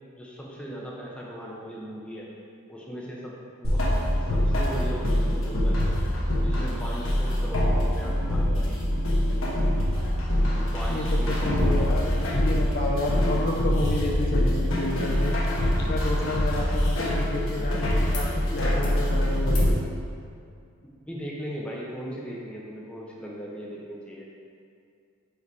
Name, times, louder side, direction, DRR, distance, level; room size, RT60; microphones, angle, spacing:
voice 1, 0.2-2.3 2.7-3.3 3.6-4.0 4.3-5.9 6.4-8.9 10.4-12.0 21.1-24.3, equal, 5° left, -4 dB, 0.8 m, -38 dB
sound 1, 3.6-19.7, left 1 dB, 65° left, 1.2 m, -24 dB
sound 2, 9.0-14.8, right 1 dB, 80° right, 0.7 m, -47 dB
voice 2, 10.9-15.4 15.9-18.3 18.5-19.7, left 2 dB, 45° left, -1 dB, 0.5 m, -31 dB
sound 3, 18.1-18.3 18.6-19.0 19.5-19.8 21.1-21.2, left 4 dB, 85° left, 1.2 m, -44 dB
5.0 x 4.9 x 4.7 m, 2.3 s
head